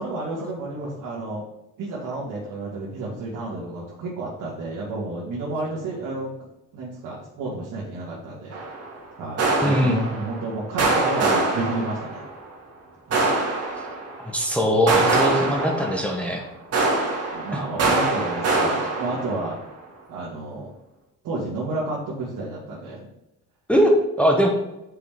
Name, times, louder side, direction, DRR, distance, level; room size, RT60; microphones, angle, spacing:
voice 1, 0.0-1.4 1.8-6.3 6.7-8.6 9.2-12.2 13.1-13.3 17.3-19.6 20.1-20.7 21.2-23.1, right 2 dB, 65° right, -5 dB, 1.8 m, -31 dB
sound 1, 8.5-8.9 9.4-10.5 10.8-12.4 13.1-14.3 14.9-16.4 16.7-19.6, right 3 dB, 45° right, 2.0 m, -24 dB
voice 2, 9.6-10.1 14.2-16.4 17.5-17.6 23.7-24.5, equal, 5° left, 0 dB, 1.0 m, -21 dB
6.7 x 5.4 x 3.5 m, 0.91 s
cardioid pair, 115°, 34 cm